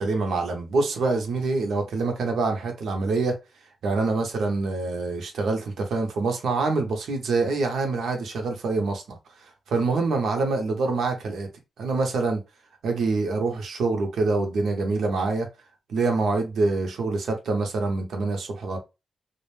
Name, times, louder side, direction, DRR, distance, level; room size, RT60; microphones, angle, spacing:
voice 1, 0.0-3.4 3.8-9.0 9.7-11.5 11.8-12.4 12.8-15.5 15.9-18.8, right 3 dB, 85° right, 0.7 m, -25 dB
2.4 x 2.1 x 3.2 m
cardioid pair, 70°, 0 cm